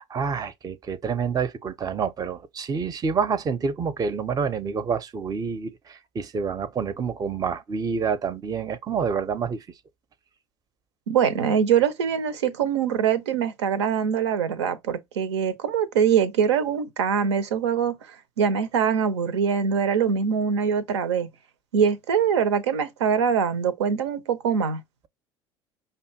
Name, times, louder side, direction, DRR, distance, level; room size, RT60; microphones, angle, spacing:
voice 1, 0.0-9.7, right 6 dB, 25° right, 0.5 m, -28 dB
voice 2, 11.1-18.0 18.4-21.3 21.7-24.8, right 7 dB, 85° right, 0.5 m, -23 dB
5.3 x 2.2 x 2.7 m
hypercardioid pair, 70°, 14 cm